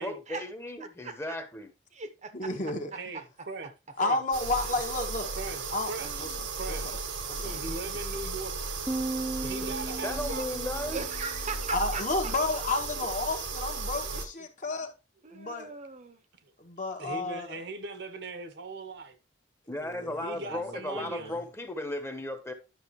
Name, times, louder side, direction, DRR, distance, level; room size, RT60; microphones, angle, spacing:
voice 1, 0.0-1.7 10.0-11.0 19.7-22.5, left 1 dB, 15° left, 1.2 m, -35 dB
voice 2, 0.8-1.4 1.9-2.5 2.9-3.0 4.6-4.7 6.0-6.4 7.4-8.0 9.4-9.8 10.9-12.8 15.2-16.2, right 4 dB, 40° right, 0.9 m, -40 dB
voice 3, 2.3-2.9 4.0-5.3 5.7-5.9 6.2-6.8 7.3-7.6 11.7-14.9 15.3-15.7 16.6-17.6 19.8-21.4, left 2 dB, 45° left, 1.5 m, -32 dB
voice 4, 2.9-3.7 4.0-4.2 5.4-6.2 6.6-7.0 7.6-8.6 9.5-10.5 16.4-16.5 17.0-19.2 20.2-21.4, right 3 dB, 65° right, 1.1 m, -39 dB
sound 1, 4.3-14.3, right 4 dB, 85° right, 1.5 m, -35 dB
sound 2, 8.9-11.3, right 2 dB, 10° right, 0.7 m, -36 dB
10.5 x 6.2 x 3.2 m
head